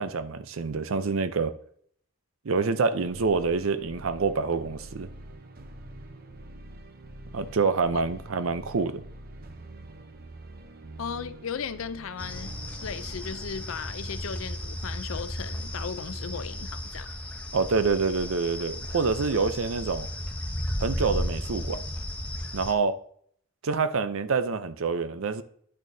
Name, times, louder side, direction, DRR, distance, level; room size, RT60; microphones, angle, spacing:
voice 1, 0.0-1.5 2.4-5.1 7.3-9.0 17.5-20.1 20.8-21.8 22.5-23.0 23.6-25.4, right 4 dB, 85° right, 0.6 m, -26 dB
sound 1, 3.0-13.1, right 1 dB, 50° right, 0.7 m, -45 dB
voice 2, 11.0-17.1, left 6 dB, 80° left, 0.5 m, -36 dB
sound 2, 12.2-22.7, left 1 dB, 5° left, 0.8 m, -34 dB
10.5 x 6.3 x 2.7 m
head